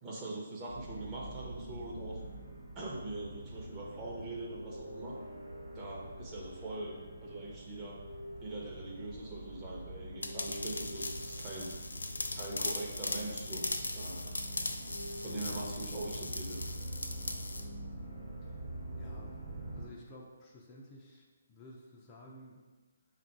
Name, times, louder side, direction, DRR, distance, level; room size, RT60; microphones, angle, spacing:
voice 1, 0.0-2.2 2.7-5.2 5.7-8.0 8.4-12.0 12.3-13.7 13.9-14.3 15.2-16.6, right 2 dB, 20° right, -4 dB, 0.9 m, -42 dB
sound 1, 0.7-19.9, right 1 dB, 55° right, 1.1 m, -45 dB
sound 2, 10.2-17.6, left 2 dB, 90° left, 0.4 m, -39 dB
voice 2, 19.0-19.3 19.7-22.6, left 1 dB, 25° left, -3 dB, 0.5 m, -53 dB
3.6 x 2.5 x 4.5 m, 1.3 s
hypercardioid pair, 150°, 0 cm